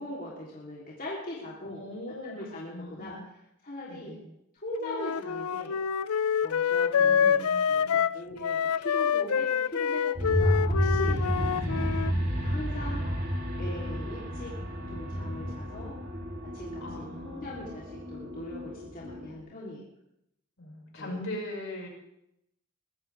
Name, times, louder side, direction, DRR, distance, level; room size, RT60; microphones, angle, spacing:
voice 1, 0.0-1.8 2.2-3.2 3.6-4.1 4.6-5.8 6.4-11.9 12.3-13.0 13.6-14.5 14.9-15.9 16.5-19.8 21.0-21.2, left 1 dB, 40° left, -6 dB, 3.4 m, -40 dB
voice 2, 1.6-3.2 3.9-4.2 6.9-8.1 12.8-13.5 16.8-17.6 20.6-21.9, left 1 dB, 65° left, -1 dB, 5.9 m, -41 dB
Wind instrument woodwind instrument, 4.8-12.1, left 7 dB, 90° left, 0.5 m, -27 dB
sound 1, 10.2-19.4, equal, 45° right, 3.8 m, -31 dB
23.5 x 14.5 x 3.5 m, 0.79 s
head